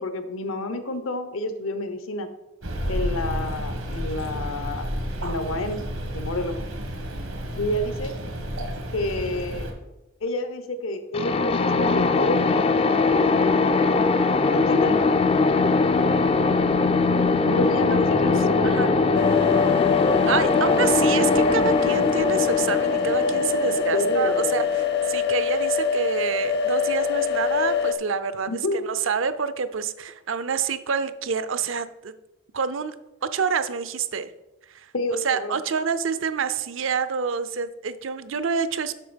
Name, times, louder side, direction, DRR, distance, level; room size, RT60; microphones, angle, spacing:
voice 1, 0.0-2.3 2.9-5.8 6.1-6.6 7.6-8.1 8.9-9.7 10.2-12.7 14.5-15.0 17.4-19.0 23.9-24.7 28.5-28.8 34.9-35.6, left 1 dB, 80° left, 9 dB, 0.9 m, -29 dB
sound 1, 2.6-9.7, equal, 90° right, 1.7 m, -31 dB
sound 2, 11.1-24.8, left 3 dB, 30° left, 0.3 m, -21 dB
sound 3, 19.1-27.9, left 6 dB, 55° left, 0.7 m, -24 dB
voice 2, 20.2-24.8 25.1-32.1 32.5-32.9 33.2-34.3 34.7-38.9, right 6 dB, 70° right, 12 dB, 0.5 m, -27 dB
7.5 x 6.2 x 5.1 m, 0.95 s
head